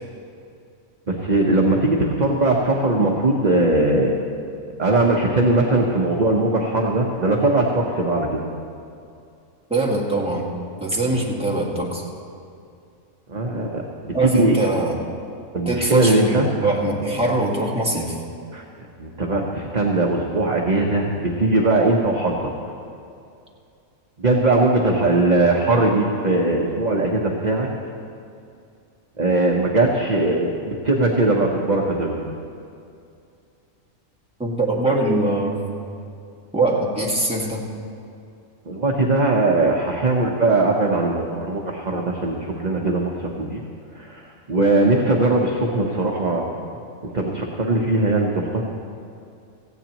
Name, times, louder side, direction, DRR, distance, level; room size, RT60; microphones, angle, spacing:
voice 1, 1.1-4.1 4.8-8.4 13.3-14.6 15.5-16.5 18.5-18.6 19.0-22.5 24.2-27.7 29.2-32.3 38.6-43.6 43.9-46.5 47.0-48.6, right 2 dB, 35° right, -1 dB, 1.0 m, -20 dB
voice 2, 9.7-10.4 10.8-12.0 14.1-15.0 15.7-18.2 34.4-35.6 36.5-37.7, right 2 dB, 5° right, -3 dB, 1.8 m, -22 dB
18.0 x 15.0 x 3.0 m, 2.5 s
omnidirectional pair, 1.4 m